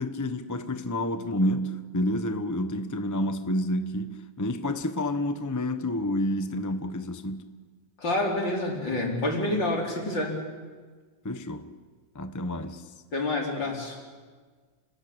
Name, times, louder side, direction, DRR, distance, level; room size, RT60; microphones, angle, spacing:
voice 1, 0.0-7.5 11.2-11.7 12.1-12.8, left 1 dB, 10° left, 0.9 m, -29 dB
voice 2, 8.0-10.4 13.1-14.0, left 2 dB, 70° left, 5.3 m, -28 dB
29.5 x 20.0 x 8.8 m
omnidirectional pair, 2.1 m